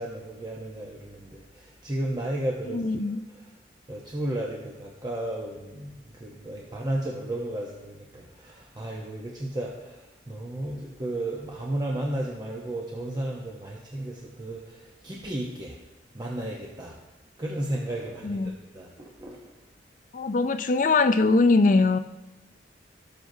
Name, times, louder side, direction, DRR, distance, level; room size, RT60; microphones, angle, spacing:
voice 1, 0.0-2.8 3.3-3.4 3.9-15.8 16.1-17.0 17.4-19.5, right 1 dB, 20° right, 0.8 m, -33 dB
voice 2, 2.7-3.2 18.2-18.5 20.1-22.0, left 3 dB, 45° left, 0.4 m, -21 dB
17.5 x 6.0 x 2.7 m
head